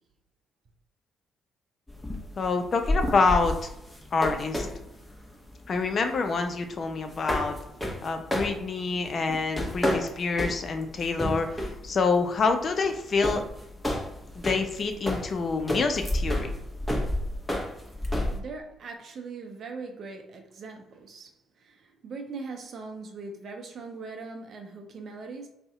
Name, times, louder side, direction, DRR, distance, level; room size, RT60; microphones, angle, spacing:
sound 1, 1.9-18.4, left 1 dB, 10° left, 0.8 m, -31 dB
voice 1, 2.4-3.5 4.1-4.7 5.7-7.5 8.0-13.4 14.4-16.5, left 4 dB, 45° left, 6 dB, 0.4 m, -27 dB
voice 2, 18.3-25.5, right 4 dB, 55° right, 4 dB, 0.5 m, -41 dB
2.6 x 2.1 x 3.6 m, 0.86 s
hypercardioid pair, 45°, 0 cm